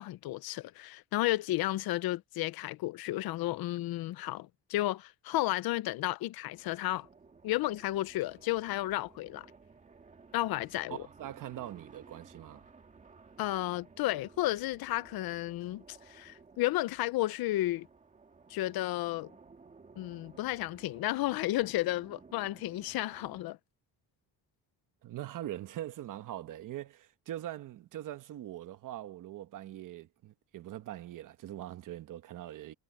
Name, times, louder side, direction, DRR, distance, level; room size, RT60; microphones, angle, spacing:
voice 1, 0.0-7.1 7.4-9.5 10.3-11.0 13.4-17.9 18.5-19.3 20.0-23.6, left 16 dB, 65° left, 0.7 m, -32 dB
sound 1, 6.5-23.4, right 4 dB, 20° right, 2.0 m, -57 dB
voice 2, 10.9-12.6 25.0-32.7, right 13 dB, 55° right, 1.1 m, -42 dB
cardioid pair, 175°, 39 cm